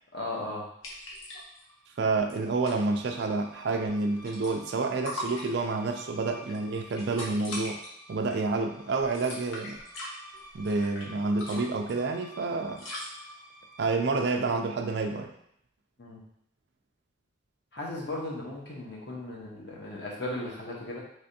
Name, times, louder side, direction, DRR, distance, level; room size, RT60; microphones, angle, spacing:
voice 1, 0.1-0.6 16.0-16.2 17.7-21.0, left 2 dB, 55° left, -3 dB, 1.0 m, -36 dB
sound 1, 0.8-1.6 1.9-2.0 2.2-2.8 3.8-4.8 5.0-5.9 6.4-7.9 8.3-8.6 9.0-11.1 11.4-11.9 12.7-13.1, left 1 dB, 85° left, 0.9 m, -40 dB
sound 2, 1.3-14.0, equal, 20° left, 0.4 m, -52 dB
voice 2, 2.0-7.8 8.1-9.8 10.5-12.8 13.8-15.3, right 3 dB, 55° right, 5 dB, 0.3 m, -29 dB
3.3 x 3.3 x 2.7 m, 0.71 s
head